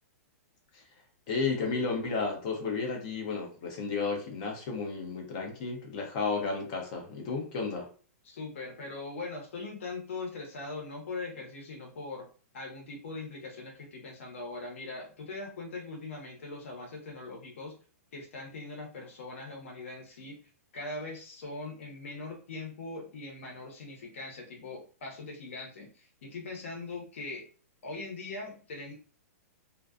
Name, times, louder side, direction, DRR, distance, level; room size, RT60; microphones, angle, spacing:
voice 1, 1.3-7.9, left 4 dB, 25° left, 0.4 m, -32 dB
voice 2, 8.2-12.3 12.5-17.8 18.1-20.4 20.7-27.4 27.8-28.9, left 3 dB, 55° left, 0.9 m, -41 dB
2.3 x 2.3 x 2.3 m
hypercardioid pair, 175°, 9 cm